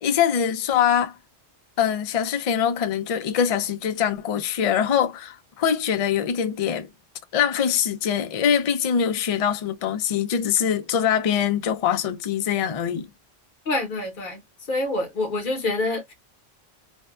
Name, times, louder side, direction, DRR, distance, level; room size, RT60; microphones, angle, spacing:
voice 1, 0.0-1.2 1.8-6.9 7.3-13.1, left 8 dB, 65° left, 0.3 m, -23 dB
voice 2, 13.7-14.4 14.7-16.1, left 2 dB, 50° left, 1.0 m, -26 dB
2.5 x 2.2 x 2.3 m
omnidirectional pair, 1.2 m